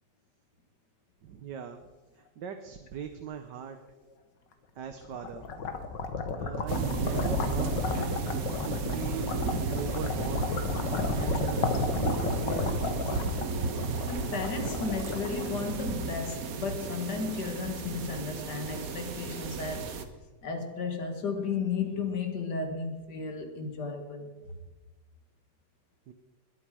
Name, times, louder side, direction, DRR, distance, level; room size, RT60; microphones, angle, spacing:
voice 1, 1.2-1.9 2.2-3.8 4.8-5.6 6.3-8.3 8.6-9.4 9.7-10.6 10.9-13.2 26.1-26.2, right 8 dB, 80° right, 1.5 m, -40 dB
sound 1, 4.9-16.1, left 4 dB, 90° left, 1.9 m, -33 dB
sound 2, 6.7-20.0, right 5 dB, 55° right, 1.4 m, -34 dB
voice 2, 14.1-19.9 20.4-24.3, left 4 dB, 70° left, 2.3 m, -34 dB
21.0 x 8.5 x 4.9 m
omnidirectional pair, 1.9 m